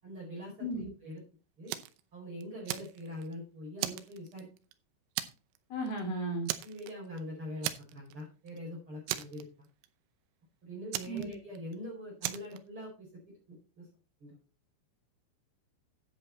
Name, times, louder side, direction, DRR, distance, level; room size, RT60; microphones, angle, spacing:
voice 1, 0.0-0.7 1.0-1.2 1.6-1.7 2.1-4.5 6.6-9.7 10.6-13.1 13.5-13.9 14.2-14.4, left 1 dB, 25° right, -4 dB, 5.1 m, -43 dB
Fire, 1.7-2.0 2.4-3.3 3.8-4.7 5.2-5.6 5.9-6.0 6.5-7.2 7.6-8.2 8.5-8.6 9.1-9.9 10.9-11.8 12.2-12.6, right 14 dB, 85° right, 3.4 m, -37 dB
voice 2, 5.7-6.5 11.1-11.3, right 1 dB, 50° left, 2 dB, 4.6 m, -34 dB
10.5 x 7.9 x 4.2 m, 0.35 s
omnidirectional pair, 5.7 m